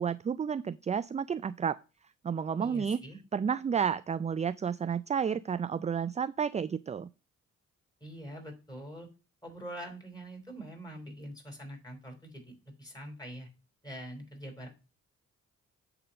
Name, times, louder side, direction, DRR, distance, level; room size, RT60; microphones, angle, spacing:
voice 1, 0.0-1.8 2.2-3.0 3.3-7.1, right 7 dB, 20° right, 16 dB, 0.3 m, -31 dB
voice 2, 2.6-3.2 8.0-9.1 9.4-12.5 12.8-13.5 13.8-14.7, right 1 dB, 10° left, 2 dB, 4.5 m, -44 dB
8.5 x 3.9 x 5.5 m, 0.31 s
supercardioid pair, 50°, 32 cm